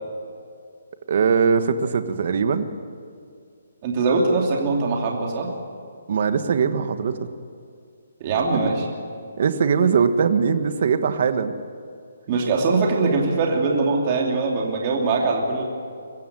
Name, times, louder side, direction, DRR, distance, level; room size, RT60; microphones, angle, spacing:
voice 1, 1.1-2.7 6.1-7.3 9.4-11.5, right 6 dB, 50° right, 10 dB, 1.4 m, -21 dB
voice 2, 3.8-5.5 8.2-8.8 12.3-15.6, right 3 dB, 30° right, 0 dB, 2.8 m, -22 dB
23.0 x 15.0 x 9.5 m, 2.3 s
hypercardioid pair, 170°, 0 cm